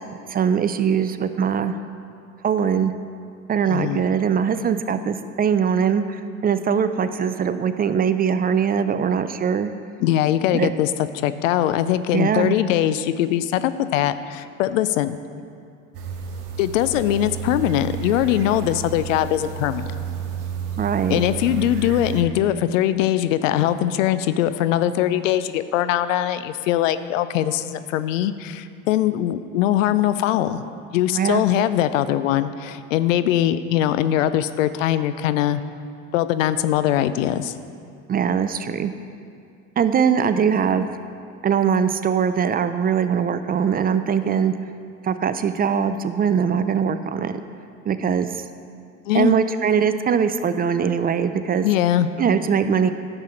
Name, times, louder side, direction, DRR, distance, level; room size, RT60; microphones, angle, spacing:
voice 1, 0.3-1.8 2.4-2.9 3.5-9.7 10.5-10.7 12.1-12.6 20.8-21.2 31.1-31.4 38.1-38.9 39.8-40.9 41.4-44.5 45.0-47.3 47.9-48.3 49.1-51.7 52.2-52.9, right 7 dB, 25° right, 11 dB, 0.4 m, -21 dB
voice 2, 3.7-4.0 10.0-10.9 11.2-15.2 16.6-19.9 21.1-30.6 30.9-35.6 36.1-37.5 49.1-49.4 51.6-52.1, left 12 dB, 80° left, 13 dB, 0.5 m, -21 dB
sound 1, 15.9-22.2, right 8 dB, 65° right, 1.2 m, -31 dB
10.5 x 6.9 x 4.3 m, 2.4 s
hypercardioid pair, 70°, 38 cm